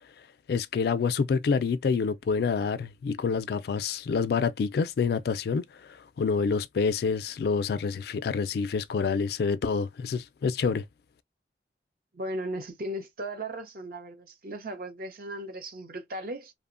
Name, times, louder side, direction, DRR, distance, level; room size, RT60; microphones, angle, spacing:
voice 1, 0.5-10.8, left 5 dB, 60° left, 0.3 m, -27 dB
voice 2, 12.1-16.5, right 1 dB, 50° right, 0.6 m, -36 dB
2.9 x 2.1 x 2.4 m
head